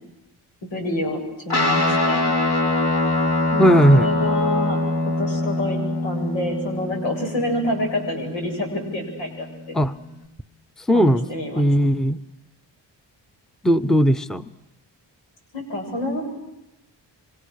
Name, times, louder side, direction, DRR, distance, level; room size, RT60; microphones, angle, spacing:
voice 1, 0.6-1.2 1.4-2.2 3.5-4.8 5.1-9.5 10.9-11.7 15.5-16.2, left 1 dB, 90° left, 2 dB, 7.9 m, -27 dB
Guitar, 1.5-10.3, left 2 dB, 60° left, 4.8 m, -24 dB
voice 2, 3.6-4.1 9.7-9.9 10.9-11.3 11.6-12.2 13.6-14.5, equal, ahead, 12 dB, 0.9 m, -17 dB
27.0 x 26.0 x 6.6 m, 0.92 s
cardioid pair, 70°, 44 cm